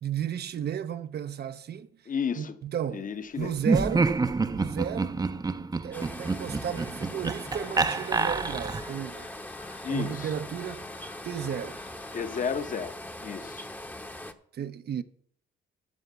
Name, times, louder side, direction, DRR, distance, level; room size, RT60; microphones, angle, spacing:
voice 1, 0.0-1.9 2.4-3.1 3.4-4.2 4.5-5.3 5.8-9.3 9.9-10.9 11.2-11.8 14.5-15.0, right 9 dB, 55° right, 0.7 m, -33 dB
voice 2, 2.1-2.6 2.9-3.5 9.8-10.3 12.1-13.7, left 6 dB, 40° left, 1.0 m, -32 dB
Laughter, 3.6-9.0, right 4 dB, 20° right, 0.6 m, -28 dB
sound 1, 5.9-14.3, left 1 dB, 10° left, 0.9 m, -41 dB
sound 2, 7.5-12.5, left 6 dB, 80° left, 1.9 m, -53 dB
13.5 x 4.9 x 6.8 m
cardioid pair, 90°, 20 cm